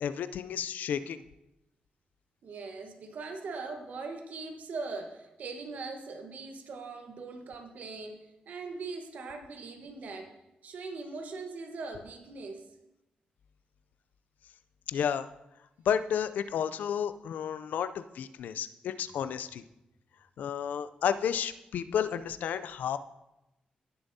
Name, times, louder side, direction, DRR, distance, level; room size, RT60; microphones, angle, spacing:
voice 1, 0.0-1.2 14.9-15.3 15.9-19.6 20.4-23.0, left 8 dB, 85° left, 12 dB, 0.4 m, -31 dB
voice 2, 2.4-12.7, right 3 dB, 70° right, 4 dB, 1.2 m, -41 dB
17.5 x 6.9 x 2.7 m, 0.92 s
cardioid pair, 100°, 3 cm